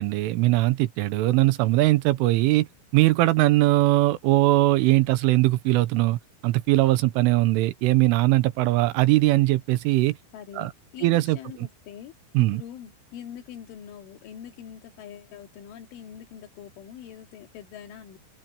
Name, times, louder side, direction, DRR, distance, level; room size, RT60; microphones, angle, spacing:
voice 1, 0.0-2.7 2.9-10.2 10.6-10.7 11.0-11.7 12.4-12.6, right 18 dB, 85° right, 3.5 m, -21 dB
voice 2, 10.3-18.2, left 9 dB, 75° left, 4.9 m, -43 dB
open air
omnidirectional pair, 5.7 m